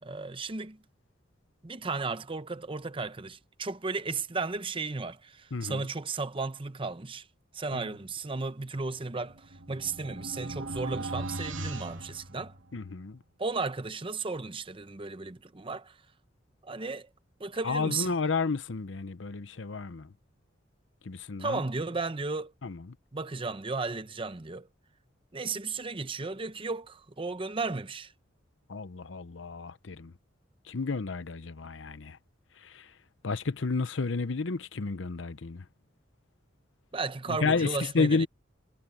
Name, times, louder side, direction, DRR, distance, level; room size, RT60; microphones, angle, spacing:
voice 1, 0.0-0.8 1.6-7.3 7.5-12.5 13.4-15.9 16.6-17.1 17.4-18.1 21.4-22.5 23.1-24.7 25.3-28.1 36.9-38.3, right 3 dB, 25° right, 0.8 m, -34 dB
voice 2, 5.5-5.8 7.7-7.8 12.7-13.2 17.6-20.1 21.1-21.6 22.6-22.8 28.7-30.1 30.7-32.2 32.7-32.8 33.2-35.6 37.3-38.3, left 4 dB, 75° left, 0.8 m, -31 dB
sound 1, 9.0-12.9, right 2 dB, 90° right, 2.7 m, -39 dB
head